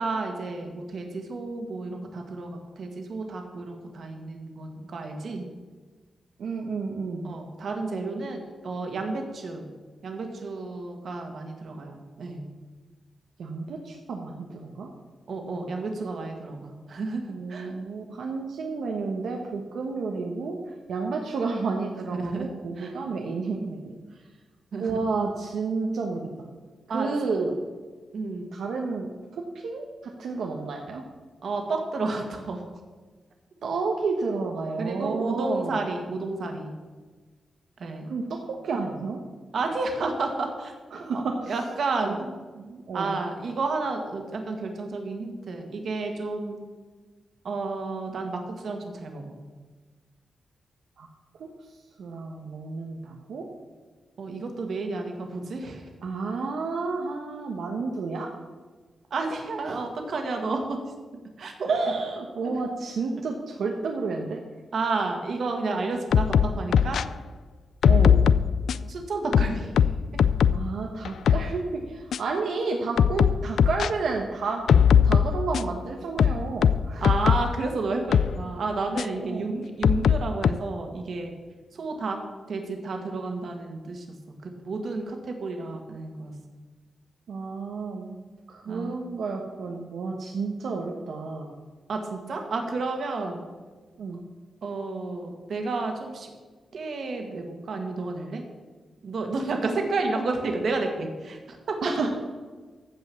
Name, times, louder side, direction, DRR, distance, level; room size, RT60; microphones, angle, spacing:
voice 1, 0.0-5.5 7.2-9.6 10.0-12.4 15.3-17.7 22.1-22.5 22.8-22.9 24.7-24.9 26.9-27.1 28.1-28.5 31.4-32.6 34.8-36.7 37.8-38.1 39.5-40.7 41.1-41.2 41.5-42.2 42.9-46.6 47.4-49.4 54.2-55.8 59.1-60.8 61.4-61.7 64.7-67.0 68.9-69.7 77.0-81.3 81.7-82.2 82.5-86.4 88.7-89.0 91.9-93.4 94.6-96.3 96.7-98.4 99.0-101.8, right 3 dB, 55° right, 3 dB, 1.8 m, -31 dB
voice 2, 6.4-7.3 13.4-14.9 17.3-20.6 20.9-23.9 24.8-26.3 26.9-27.5 28.5-31.0 33.6-35.8 38.1-39.2 40.9-41.5 42.0-42.1 42.5-43.1 51.0-51.1 51.4-51.5 52.0-53.5 56.0-58.3 59.7-59.8 61.7-64.4 67.8-68.2 70.5-74.7 75.0-77.1 79.2-79.5 87.3-88.2 88.5-91.5 94.0-94.2 101.8-102.1, right 4 dB, 80° right, 1 dB, 1.2 m, -31 dB
sound 1, 66.1-67.0 67.8-68.9 69.3-70.7 71.1-71.5 72.1-72.2 73.0-73.9 74.7-75.8 76.2-77.5 78.1-78.3 79.0-79.1 79.8-80.5, left 8 dB, 80° left, 0.3 m, -20 dB
15.0 x 5.4 x 7.0 m, 1.4 s
wide cardioid pair, 160°, 0 cm